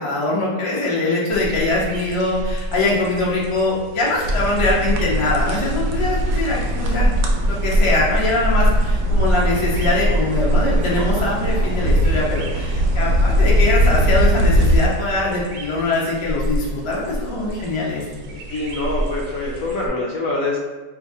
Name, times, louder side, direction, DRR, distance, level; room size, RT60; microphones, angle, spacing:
voice 1, 0.0-7.1 7.5-18.4, left 2 dB, 45° left, -5 dB, 0.4 m, -22 dB
sound 1, 1.3-19.9, equal, 85° right, 1.3 m, -25 dB
sound 2, 4.2-14.9, equal, 65° right, 0.9 m, -21 dB
voice 2, 18.5-20.6, left 2 dB, 70° left, -2 dB, 0.8 m, -24 dB
4.7 x 3.1 x 2.7 m, 1.2 s
omnidirectional pair, 1.9 m